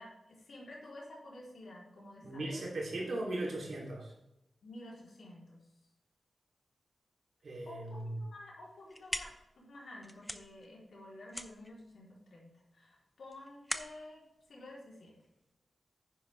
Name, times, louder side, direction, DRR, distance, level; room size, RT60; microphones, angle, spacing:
voice 1, 0.0-2.7 4.6-5.6 7.7-15.2, left 1 dB, 70° left, -4 dB, 3.7 m, -51 dB
voice 2, 2.2-4.1 7.4-8.2, right 1 dB, 65° right, -2 dB, 3.3 m, -38 dB
sound 1, 8.6-15.5, equal, 5° left, 0.7 m, -44 dB
10.0 x 9.7 x 3.5 m, 0.88 s
wide cardioid pair, 120°, 0 cm